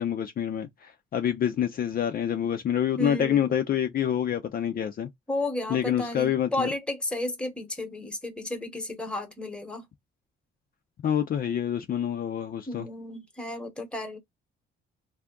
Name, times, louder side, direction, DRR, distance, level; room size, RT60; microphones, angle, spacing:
voice 1, 0.0-5.1 5.7-6.7 11.0-12.9, left 9 dB, 45° left, 0.5 m, -27 dB
voice 2, 3.0-3.5 5.3-9.9 12.7-14.2, left 1 dB, 5° left, 1.0 m, -33 dB
2.7 x 2.3 x 3.6 m
cardioid pair, 90°, 20 cm